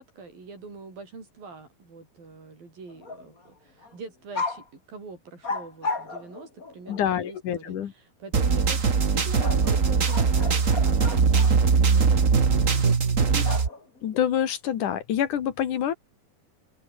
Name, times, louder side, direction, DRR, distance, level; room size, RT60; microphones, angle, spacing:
voice 1, 0.0-13.5, right 4 dB, 80° right, 9.5 m, -44 dB
sound 1, 2.9-3.5 3.8-3.9 4.3-4.6 5.4-7.1 9.4-11.6 13.4-14.1, left 3 dB, 25° left, 3.4 m, -34 dB
voice 2, 6.9-7.9 14.0-15.9, left 9 dB, 65° left, 3.1 m, -26 dB
sound 2, 8.3-13.7, right 5 dB, 35° right, 1.4 m, -21 dB
open air
omnidirectional pair, 4.0 m